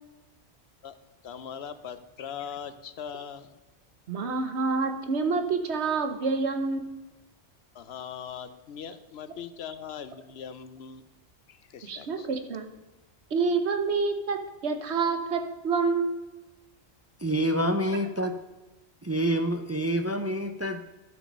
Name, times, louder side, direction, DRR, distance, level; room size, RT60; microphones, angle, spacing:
voice 1, 1.2-3.6 7.7-11.0 11.5-12.3, left 8 dB, 70° left, 12 dB, 0.9 m, -40 dB
voice 2, 4.1-6.9 11.8-12.7 13.3-16.4, right 4 dB, 75° right, 7 dB, 1.2 m, -28 dB
voice 3, 17.2-18.4 19.0-20.8, right 1 dB, 25° right, 6 dB, 0.3 m, -27 dB
12.5 x 6.1 x 5.4 m, 1.1 s
omnidirectional pair, 1.1 m